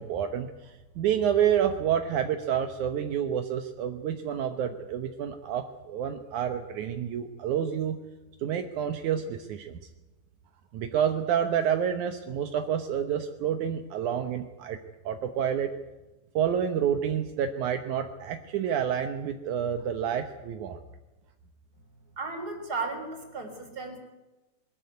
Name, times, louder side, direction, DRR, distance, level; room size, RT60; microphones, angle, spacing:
voice 1, 0.0-8.0 8.4-9.8 10.7-14.8 15.1-15.7 16.3-20.8, right 9 dB, 70° right, 7 dB, 1.9 m, -29 dB
voice 2, 22.2-24.0, right 3 dB, 25° right, 5 dB, 3.7 m, -35 dB
21.5 x 14.0 x 9.5 m, 1.1 s
omnidirectional pair, 4.8 m